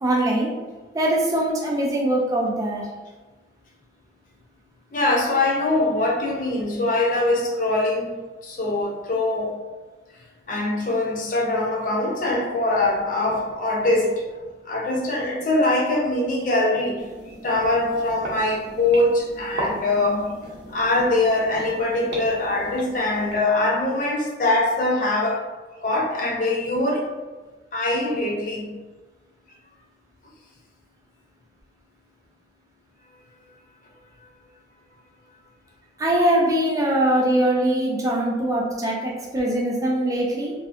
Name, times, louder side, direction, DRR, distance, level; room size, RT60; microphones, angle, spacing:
voice 1, 0.0-0.5 0.9-2.9 36.0-40.5, right 1 dB, 20° right, -3 dB, 0.4 m, -22 dB
voice 2, 4.9-8.1 8.4-9.5 10.5-14.2 14.7-17.0 17.4-25.4 25.8-27.1 27.7-28.7, left 2 dB, 45° left, -1 dB, 0.5 m, -23 dB
sound 1, 17.0-23.4, equal, 75° right, 0.6 m, -36 dB
2.6 x 2.4 x 2.4 m, 1.3 s
head